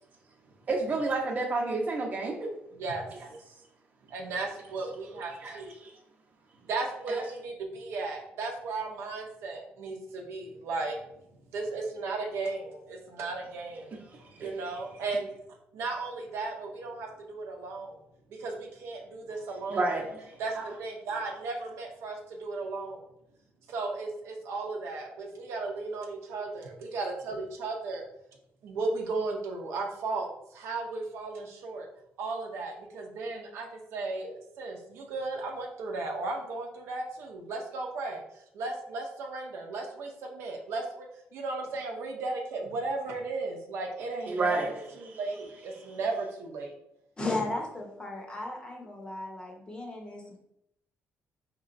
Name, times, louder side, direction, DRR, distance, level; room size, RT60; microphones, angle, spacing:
voice 1, 0.7-2.5 3.1-3.3 5.4-5.9 7.1-7.2 14.1-14.5 19.7-20.7 44.3-44.7 45.1-45.2, right 3 dB, 40° right, 0 dB, 0.8 m, -31 dB
voice 2, 4.1-5.7 6.7-11.0 11.5-13.9 14.4-15.3 15.7-18.0 18.3-19.9 20.4-23.0 23.7-28.0 28.6-31.9 32.2-38.2 38.5-41.1 41.3-46.7, right 3 dB, 85° right, 1 dB, 0.7 m, -35 dB
voice 3, 47.2-50.4, left 2 dB, 20° left, 1 dB, 0.7 m, -35 dB
4.0 x 3.0 x 2.5 m, 0.79 s
cardioid pair, 135°, 4 cm